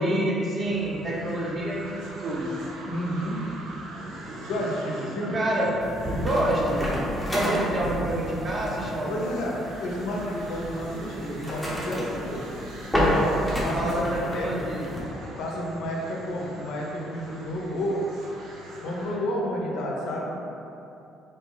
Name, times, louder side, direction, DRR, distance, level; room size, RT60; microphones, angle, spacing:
voice 1, 0.0-2.5 5.0-5.7 6.0-6.8 7.3-9.4 13.7-14.9, right 1 dB, 30° right, -4 dB, 0.7 m, -27 dB
sound 1, 0.6-19.2, right 1 dB, 85° right, 0.6 m, -42 dB
voice 2, 2.8-3.4 4.4-5.4 7.5-7.7 9.1-12.4 13.0-13.9 14.3-14.5 15.4-18.0 18.8-20.3, left 1 dB, 80° left, -2 dB, 0.6 m, -31 dB
sound 2, 5.8-15.0, equal, ahead, 0.7 m, -30 dB
3.8 x 2.0 x 3.8 m, 2.8 s
cardioid pair, 115°, 0 cm